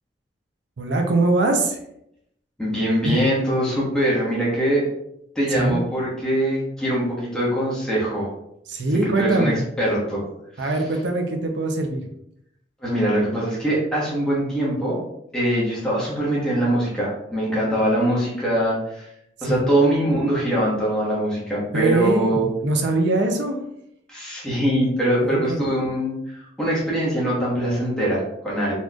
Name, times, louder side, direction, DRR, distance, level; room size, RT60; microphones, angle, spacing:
voice 1, 0.8-1.8 3.0-3.2 5.6-5.8 8.7-9.6 10.6-12.1 19.4-19.6 21.7-23.6 25.2-25.7, right 2 dB, 75° right, 4 dB, 0.6 m, -22 dB
voice 2, 2.6-4.9 5.3-8.3 9.2-10.2 10.6-10.7 12.8-15.0 15.3-19.1 19.4-22.5 24.1-28.7, right 1 dB, 5° left, -7 dB, 1.1 m, -22 dB
4.1 x 3.0 x 2.3 m, 0.76 s
head